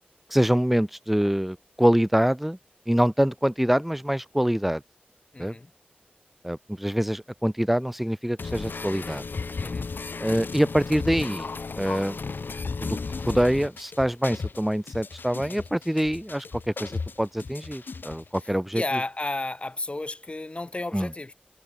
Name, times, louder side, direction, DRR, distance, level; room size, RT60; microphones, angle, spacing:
voice 1, 0.3-2.6 2.9-4.8 5.4-5.5 6.4-9.2 10.2-12.2 12.8-13.0 13.2-18.8 20.9-21.1, equal, 5° right, 0.6 m, -25 dB
voice 2, 5.3-5.7 9.6-9.9 15.5-15.7 18.7-21.3, left 2 dB, 35° left, 1.4 m, -32 dB
sound 1, 8.4-18.4, left 4 dB, 85° left, 1.8 m, -34 dB
wide cardioid pair, 80°, 3 cm